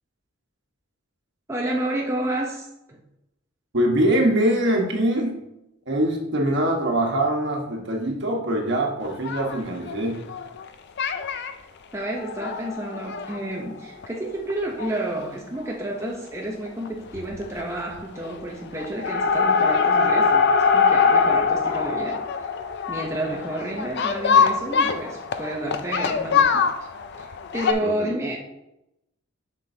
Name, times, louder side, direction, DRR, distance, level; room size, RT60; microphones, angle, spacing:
voice 1, 1.5-3.0 11.9-22.2 22.9-26.6 27.2-28.4, right 1 dB, 15° right, -2 dB, 0.7 m, -30 dB
voice 2, 3.7-5.4 5.9-10.2 27.8-28.2, right 1 dB, 60° right, 0 dB, 1.4 m, -23 dB
sound 1, 9.1-10.7 11.0-11.5 12.0-14.1 14.5-14.6 14.8-14.9 15.2-15.3 16.7-16.9 17.1-17.6 17.9-18.4 18.8-27.7, left 5 dB, 55° left, 0.5 m, -23 dB
7.5 x 5.9 x 2.8 m, 0.86 s
head